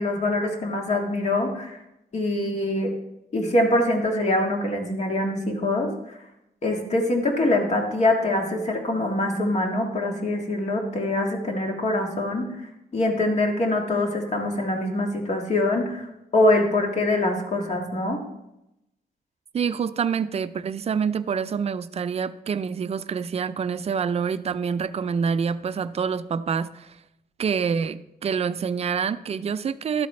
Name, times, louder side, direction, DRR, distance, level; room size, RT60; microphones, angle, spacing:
voice 1, 0.0-1.8 2.1-2.9 3.3-5.9 6.6-12.4 12.9-16.1 16.3-18.2, left 1 dB, 45° left, 2 dB, 1.7 m, -24 dB
voice 2, 19.5-27.0 27.4-30.1, right 6 dB, 40° right, 14 dB, 0.4 m, -26 dB
12.5 x 8.0 x 3.2 m, 0.87 s
wide cardioid pair, 155°, 16 cm